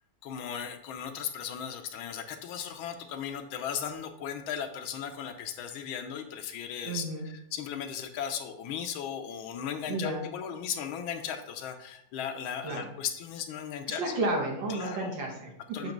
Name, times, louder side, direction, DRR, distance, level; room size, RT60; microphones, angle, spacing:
voice 1, 0.2-14.1 14.7-15.1 15.7-15.9, left 8 dB, 85° left, 6 dB, 1.5 m, -37 dB
voice 2, 6.9-7.3 9.9-10.2 12.6-12.9 13.9-15.9, right 2 dB, 70° right, -1 dB, 1.8 m, -32 dB
7.4 x 3.0 x 5.2 m, 0.76 s
omnidirectional pair, 2.2 m